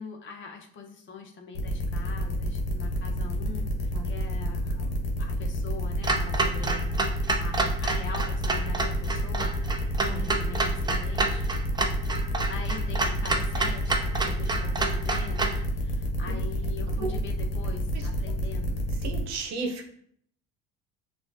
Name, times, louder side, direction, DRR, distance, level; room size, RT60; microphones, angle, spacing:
voice 1, 0.0-9.5 9.8-11.4 12.5-18.8, left 4 dB, 40° left, 2 dB, 1.0 m, -43 dB
sound 1, 1.5-19.2, equal, 65° left, 1.2 m, -30 dB
Clock, 6.0-15.6, right 3 dB, 15° right, 0.5 m, -29 dB
voice 2, 19.0-19.9, right 4 dB, 60° right, 3 dB, 0.9 m, -33 dB
5.7 x 2.5 x 2.7 m, 0.65 s
hypercardioid pair, 75°, 30 cm